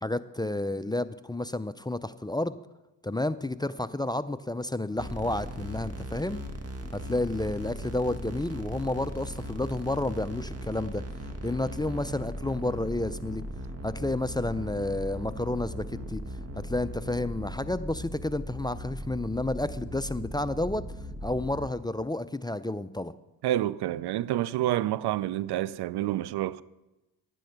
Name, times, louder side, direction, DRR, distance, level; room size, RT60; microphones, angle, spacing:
voice 1, 0.0-2.6 3.0-6.4 6.9-11.0 11.4-13.4 13.8-16.2 16.6-20.8 21.2-23.1, left 2 dB, 10° left, 0.5 m, -31 dB
sound 1, 5.0-21.7, equal, 35° right, 1.8 m, -38 dB
voice 2, 23.4-26.6, right 13 dB, 65° right, 0.5 m, -28 dB
11.5 x 9.1 x 5.8 m
supercardioid pair, 50°, 43 cm